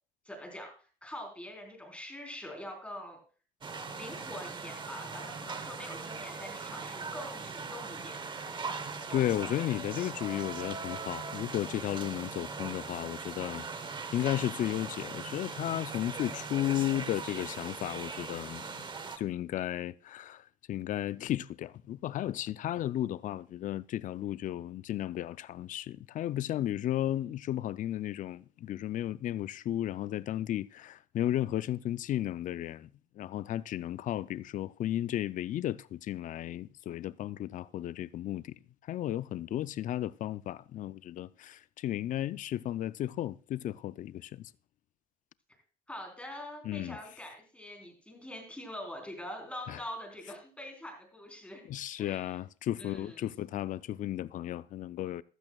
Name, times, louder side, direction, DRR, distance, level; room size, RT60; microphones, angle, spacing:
voice 1, 0.3-0.7 1.0-3.2 4.0-8.2 45.9-51.6 52.0-52.4 52.8-53.3, left 1 dB, 5° left, 3.9 m, -44 dB
sound 1, 3.6-19.2, right 4 dB, 30° right, 1.0 m, -40 dB
voice 2, 9.1-18.7 19.2-20.4 20.7-32.9 33.2-38.6 38.9-44.4 46.6-47.0 49.7-49.8 51.7-55.2, left 12 dB, 50° left, 0.4 m, -34 dB
14.5 x 12.0 x 2.3 m
cardioid pair, 110°, 17 cm